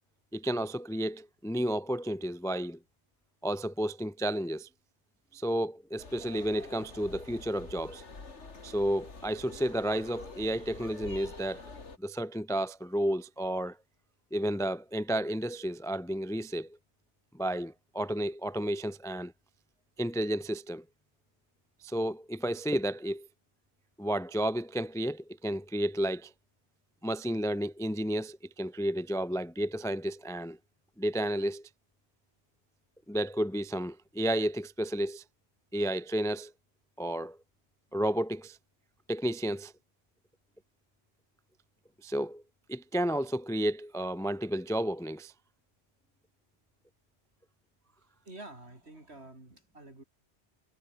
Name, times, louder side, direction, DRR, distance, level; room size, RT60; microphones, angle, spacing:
voice 1, 0.3-2.8 3.4-4.7 5.3-8.0 8.6-11.6 12.0-13.8 14.3-16.8 17.3-19.3 20.0-20.8 21.8-23.3 24.0-26.3 27.0-30.6 31.0-31.7 33.1-35.2 35.7-36.5 37.0-37.4 37.9-38.6 39.1-39.7 42.0-42.4 42.7-45.3, right 1 dB, 5° left, 0.4 m, -32 dB
sound 1, 6.0-12.0, left 3 dB, 75° left, 2.9 m, -47 dB
voice 2, 48.1-50.0, right 2 dB, 65° right, 5.5 m, -49 dB
omnidirectional pair, 1.2 m